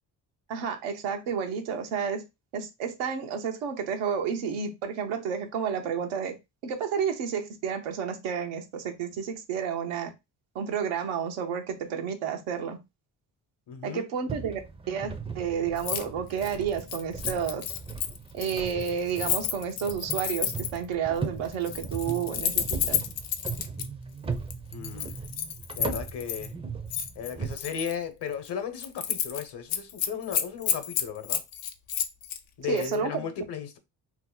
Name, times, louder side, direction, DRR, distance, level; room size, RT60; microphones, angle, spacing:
voice 1, 0.5-2.2 2.5-6.4 6.6-10.1 10.5-12.8 13.8-14.6 14.9-17.6 18.3-23.0 32.7-33.2, right 7 dB, 85° right, 0.8 m, -31 dB
voice 2, 13.7-14.1 24.7-25.1 25.8-26.5 27.2-31.4 32.6-33.8, left 7 dB, 60° left, 0.9 m, -35 dB
sound 1, 14.3-27.5, right 5 dB, 15° right, 0.4 m, -38 dB
Keys jangling, 15.8-16.0 16.3-20.8 21.5-23.9 24.5-26.5 26.9-28.0 28.3-28.5 28.8-29.4 29.7-32.4 32.8-33.0, left 9 dB, 85° left, 0.6 m, -31 dB
2.8 x 2.1 x 3.7 m
supercardioid pair, 60°, 47 cm